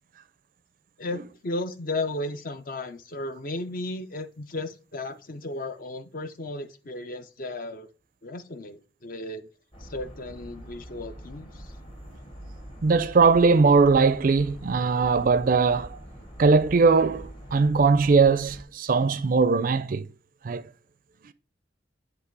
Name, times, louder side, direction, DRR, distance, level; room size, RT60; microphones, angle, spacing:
voice 1, 1.0-7.9 8.2-9.5 9.8-11.7, left 2 dB, 45° left, 0.6 m, -34 dB
sound 1, 9.7-18.6, equal, 30° left, 1.2 m, -44 dB
voice 2, 12.8-16.0 16.4-20.0 20.4-20.6, right 4 dB, 45° right, 0.4 m, -20 dB
8.0 x 3.1 x 4.5 m
head